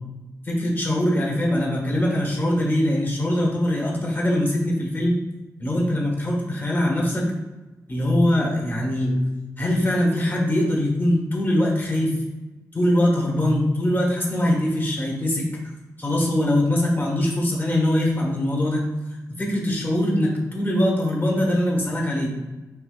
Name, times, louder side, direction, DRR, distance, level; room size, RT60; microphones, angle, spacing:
voice 1, 0.4-5.2 5.6-7.3 7.9-9.2 9.6-12.2 12.7-15.5 16.0-18.9 19.4-22.4, left 1 dB, 30° left, -3 dB, 1.1 m, -22 dB
4.6 x 2.8 x 2.3 m, 1.1 s
cardioid pair, 65°, 6 cm